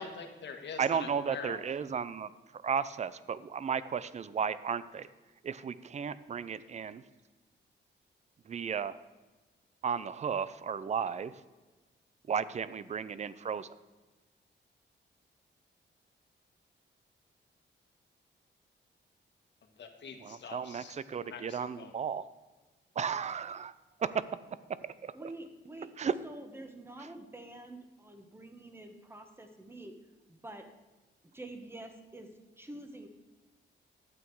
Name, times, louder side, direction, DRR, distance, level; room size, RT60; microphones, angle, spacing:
voice 1, 0.0-1.6 19.8-21.9, left 5 dB, 70° left, 5 dB, 1.5 m, -44 dB
voice 2, 0.8-2.3 2.6-5.1 5.4-7.0 8.5-9.0 9.8-11.3 12.3-13.7 20.2-22.2 23.0-23.7 24.0-24.1 25.0-25.1 26.0-26.1, right 7 dB, 35° right, 16 dB, 0.5 m, -34 dB
voice 3, 25.1-25.9 26.2-29.9 30.3-30.6 31.3-32.3 32.6-33.1, right 1 dB, 10° right, 6 dB, 1.2 m, -47 dB
12.0 x 8.6 x 4.7 m, 1.2 s
wide cardioid pair, 120°, 19 cm